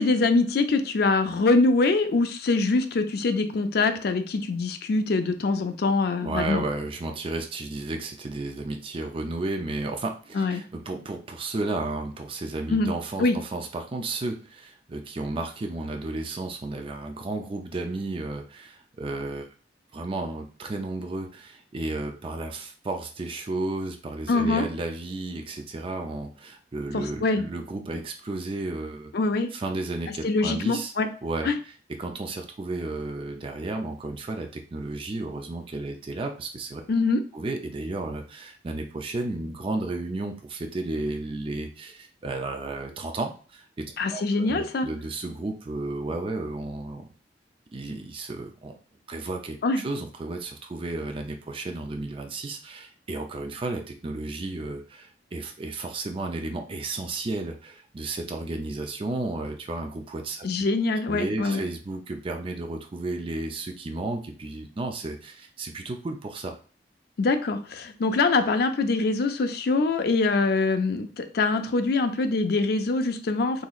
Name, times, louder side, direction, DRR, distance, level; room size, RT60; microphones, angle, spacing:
voice 1, 0.0-6.6 10.3-10.6 12.7-12.9 13.2-13.4 24.3-24.6 26.9-27.4 29.1-29.5 30.1-31.1 31.4-31.5 36.9-37.2 44.0-44.9 49.6-49.8 60.4-61.6 67.2-73.6, left 3 dB, 60° left, 8 dB, 0.5 m, -24 dB
voice 2, 6.2-19.5 19.9-29.1 29.5-30.9 31.2-31.7 32.0-36.8 37.3-43.9 44.1-47.1 47.7-48.8 49.1-60.7 61.1-66.5, right 2 dB, 30° right, 4 dB, 0.4 m, -33 dB
3.9 x 3.0 x 2.4 m, 0.38 s
head